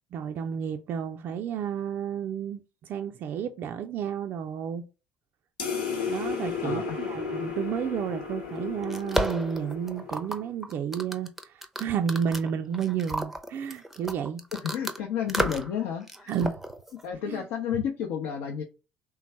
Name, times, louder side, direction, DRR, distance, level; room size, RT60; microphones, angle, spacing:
voice 1, 0.1-4.8 6.1-14.4 16.3-16.6 17.3-17.4, right 8 dB, 45° right, 0.4 m, -31 dB
sound 1, 5.6-10.5, left 6 dB, 75° left, 1.0 m, -34 dB
sound 2, 8.5-15.0 15.3-15.8 16.1-17.1, right 1 dB, 5° right, 0.6 m, -32 dB
voice 2, 14.6-16.3 17.0-18.6, left 8 dB, 60° left, 0.6 m, -31 dB
3.4 x 3.1 x 4.6 m
figure-of-eight pair, 55°, 5 cm